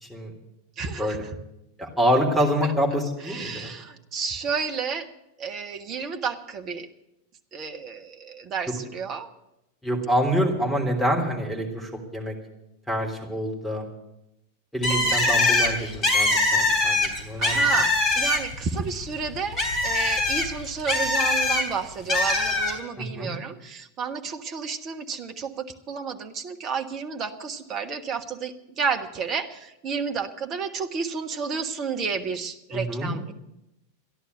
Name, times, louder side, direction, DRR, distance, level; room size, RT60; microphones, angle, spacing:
voice 1, 0.0-0.3 1.0-1.2 1.8-3.7 9.8-12.3 12.9-13.8 14.7-17.6 23.0-23.3 32.7-33.1, equal, ahead, 0 dB, 3.4 m, -26 dB
voice 2, 0.8-1.2 2.6-2.7 3.2-5.1 5.4-6.9 7.5-9.3 14.9-15.2 17.4-33.3, right 5 dB, 30° right, 5 dB, 1.3 m, -31 dB
Bird, 14.8-18.7 19.0-21.6 22.1-22.7, left 2 dB, 30° left, 3.3 m, -22 dB
14.0 x 11.0 x 8.3 m, 0.89 s
figure-of-eight pair, 90°, 0 cm